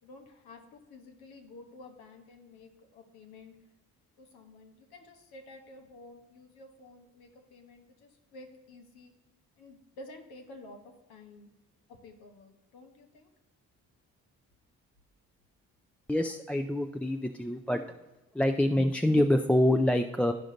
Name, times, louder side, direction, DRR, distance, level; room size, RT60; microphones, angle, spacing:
voice 1, 0.0-3.5 4.2-9.1 9.6-11.5 11.9-13.3, left 2 dB, 85° left, 4 dB, 1.2 m, -51 dB
voice 2, 16.1-17.8 18.3-20.3, left 1 dB, 5° left, 5 dB, 0.4 m, -26 dB
12.0 x 5.0 x 3.9 m, 1.1 s
supercardioid pair, 50°, 37 cm